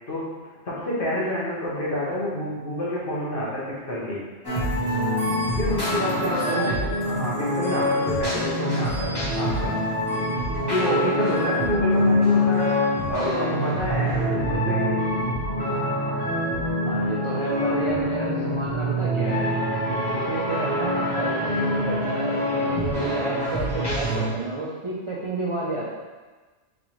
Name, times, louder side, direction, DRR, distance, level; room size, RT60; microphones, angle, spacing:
voice 1, 0.6-4.2 5.6-9.7 10.6-12.7 13.1-15.0 17.6-18.1 19.8-20.2, left 1 dB, 50° left, -8 dB, 1.5 m, -29 dB
sound 1, 4.4-24.3, left 1 dB, 20° left, 1.3 m, -25 dB
voice 2, 6.4-6.8 16.8-19.5 20.1-25.9, right 3 dB, 40° right, -6 dB, 0.5 m, -30 dB
3.9 x 3.9 x 3.1 m, 1.3 s
omnidirectional pair, 1.2 m